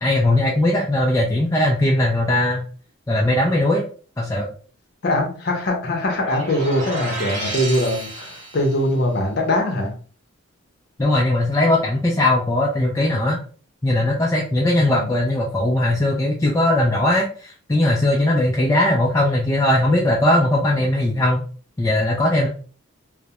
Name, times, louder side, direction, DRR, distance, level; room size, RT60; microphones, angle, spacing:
voice 1, 0.0-2.6 3.1-3.8 4.2-4.5 11.0-13.4 13.8-21.4 21.8-22.5, left 1 dB, 15° left, -3 dB, 0.3 m, -19 dB
voice 2, 5.0-9.9 14.7-15.1, left 1 dB, 45° left, 1 dB, 0.6 m, -22 dB
sound 1, 6.1-8.9, right 2 dB, 35° right, 0.9 m, -32 dB
2.2 x 2.0 x 2.8 m, 0.40 s
head